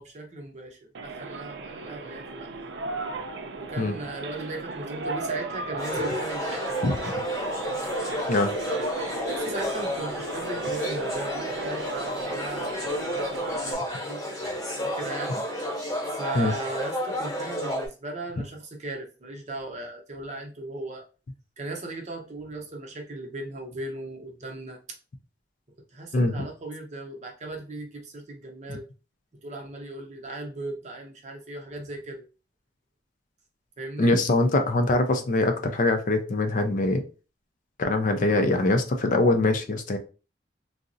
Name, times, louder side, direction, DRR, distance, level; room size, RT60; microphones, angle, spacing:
voice 1, 0.0-2.5 3.6-7.0 9.3-14.2 14.8-15.4 16.1-21.0 21.6-24.8 25.9-28.9 29.4-32.2 33.8-34.1, right 2 dB, 40° right, 2 dB, 0.7 m, -37 dB
sound 1, 0.9-13.7, right 3 dB, 75° right, 0.4 m, -36 dB
sound 2, 5.8-17.9, equal, 20° left, 1.0 m, -31 dB
voice 2, 26.1-26.5 34.0-37.0 37.8-40.0, left 2 dB, 45° left, 6 dB, 0.4 m, -23 dB
3.6 x 2.0 x 2.5 m, 0.34 s
head